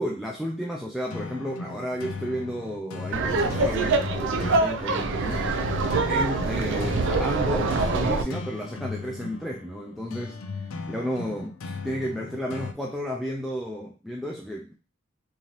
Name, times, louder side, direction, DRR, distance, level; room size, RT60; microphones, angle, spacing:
voice 1, 0.0-5.5 6.1-10.4 10.9-14.7, equal, ahead, -2 dB, 0.3 m, -32 dB
sound 1, 1.1-12.7, left 3 dB, 75° left, 0.4 m, -37 dB
Laughter, 3.1-8.2, right 3 dB, 65° right, 0.4 m, -25 dB
3.7 x 3.0 x 2.8 m, 0.34 s
head